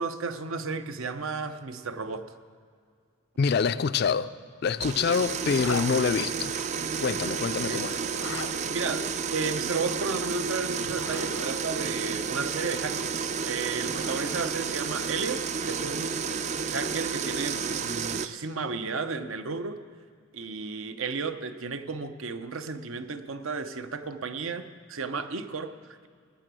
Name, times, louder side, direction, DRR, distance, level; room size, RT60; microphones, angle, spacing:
voice 1, 0.0-2.3 7.7-7.8 8.7-16.4 16.7-19.8 20.3-26.1, right 4 dB, 80° right, 9 dB, 0.7 m, -33 dB
voice 2, 3.4-4.3 4.6-6.6 7.0-8.0, left 5 dB, 50° left, 13 dB, 0.3 m, -26 dB
sound 1, 4.8-18.3, right 6 dB, 35° right, 0.3 m, -31 dB
Zipper (clothing), 5.5-5.9 8.0-8.5 10.7-11.5 13.4-14.5, left 4 dB, 85° left, 0.9 m, -38 dB
20.0 x 6.8 x 6.2 m, 2.1 s
head